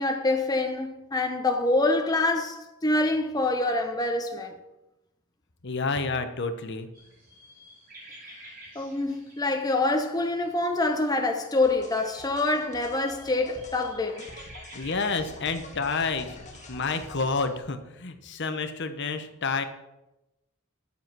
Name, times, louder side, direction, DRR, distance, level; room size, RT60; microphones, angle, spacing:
voice 1, 0.0-4.5 8.7-14.2, left 2 dB, 15° left, 0.8 m, -26 dB
voice 2, 5.6-6.9 14.7-19.6, left 4 dB, 55° left, 1.0 m, -29 dB
sound 1, 6.9-17.6, right 1 dB, 40° right, 4.1 m, -51 dB
sound 2, 11.6-17.4, left 2 dB, 35° left, 1.3 m, -46 dB
11.0 x 7.0 x 6.1 m
head